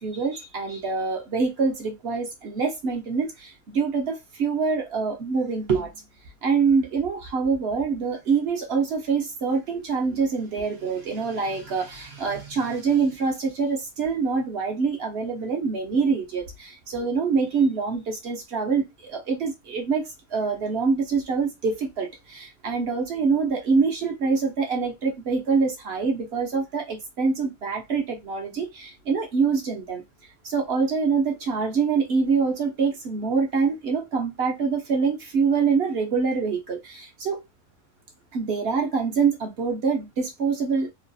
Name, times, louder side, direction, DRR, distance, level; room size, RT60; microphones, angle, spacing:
voice 1, 0.0-5.9 6.4-30.0 30.4-37.4 38.3-40.9, right 5 dB, 55° right, 0.8 m, -25 dB
3.0 x 2.3 x 2.6 m
omnidirectional pair, 1.4 m